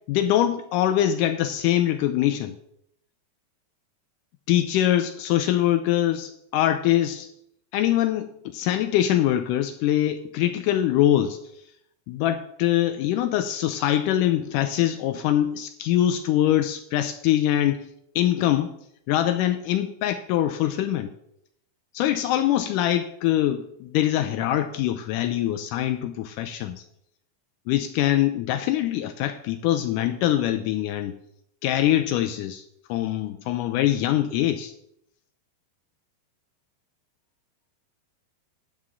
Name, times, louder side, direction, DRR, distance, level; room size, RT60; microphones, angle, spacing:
voice 1, 0.1-2.6 4.5-7.3 7.7-11.4 12.1-17.9 18.2-18.7 19.1-21.1 21.9-26.8 27.7-31.2 31.6-34.7, left 12 dB, 90° left, 8 dB, 1.8 m, -23 dB
12.5 x 8.5 x 3.7 m, 0.74 s
omnidirectional pair, 4.2 m